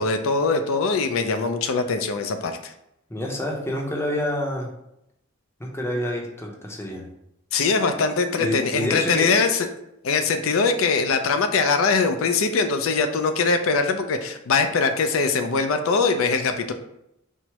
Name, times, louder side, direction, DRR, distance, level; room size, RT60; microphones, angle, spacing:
voice 1, 0.0-2.7 7.5-9.7 10.0-16.7, left 4 dB, 80° left, 7 dB, 0.4 m, -22 dB
voice 2, 3.1-4.7 5.6-7.0 8.0-8.1 8.4-9.3, left 1 dB, 10° left, 0 dB, 0.6 m, -28 dB
4.4 x 2.0 x 4.5 m, 0.81 s
head